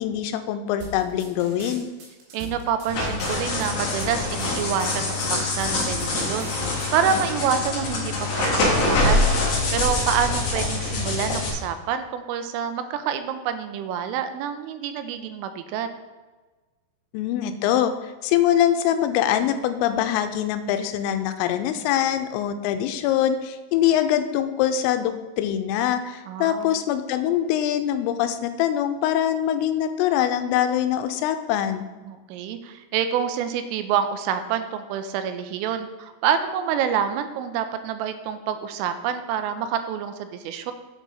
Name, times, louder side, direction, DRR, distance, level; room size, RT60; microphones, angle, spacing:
voice 1, 0.0-1.9 17.1-31.8, left 10 dB, 85° left, 9 dB, 3.2 m, -23 dB
sound 1, 0.8-7.2, left 1 dB, 65° right, 3.9 m, -38 dB
voice 2, 2.3-9.3 9.7-15.9 26.3-26.8 32.0-40.7, right 8 dB, 85° right, 9 dB, 3.1 m, -27 dB
sound 2, 2.9-11.5, left 2 dB, 65° left, 1.7 m, -24 dB
7.9 x 6.1 x 5.5 m, 1.2 s
omnidirectional pair, 5.9 m